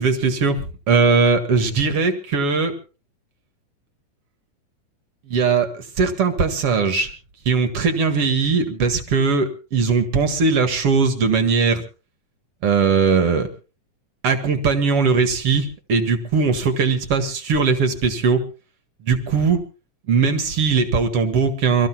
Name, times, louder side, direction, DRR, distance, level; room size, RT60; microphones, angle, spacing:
voice 1, 0.0-2.7 5.3-7.1 7.5-11.8 12.6-13.5 14.2-18.4 19.0-19.6 20.1-21.9, right 5 dB, 50° right, 7 dB, 2.7 m, -19 dB
29.0 x 14.5 x 2.3 m, 0.34 s
omnidirectional pair, 3.5 m